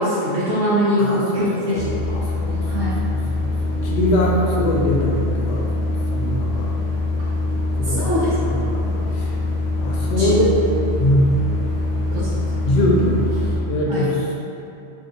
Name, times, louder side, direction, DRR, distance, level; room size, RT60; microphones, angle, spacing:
voice 1, 0.0-1.8 2.1-2.2 2.5-2.9 7.8-8.3 10.1-10.5 12.1-12.4 13.9-14.0, equal, 85° right, -10 dB, 0.9 m, -22 dB
voice 2, 1.0-1.9 2.2-2.9 3.4-5.6 6.1-6.7 7.7-9.3 9.8-10.4 11.0-11.4 12.6-14.3, left 1 dB, 70° left, -3 dB, 0.8 m, -22 dB
sound 1, 1.7-13.6, left 2 dB, 15° left, 0.6 m, -23 dB
2.7 x 2.4 x 3.7 m, 2.8 s
omnidirectional pair, 1.2 m